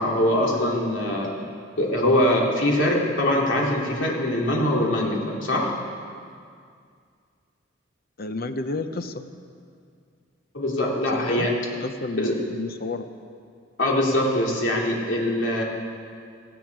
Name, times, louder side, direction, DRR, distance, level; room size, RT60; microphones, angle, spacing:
voice 1, 0.0-1.3 1.8-5.7 10.5-11.5 12.2-12.3 13.8-15.6, left 1 dB, 70° left, -2 dB, 2.8 m, -23 dB
voice 2, 8.2-9.2 11.1-11.5 11.8-13.1, left 3 dB, 50° left, 9 dB, 0.8 m, -30 dB
17.5 x 16.0 x 4.7 m, 2.2 s
head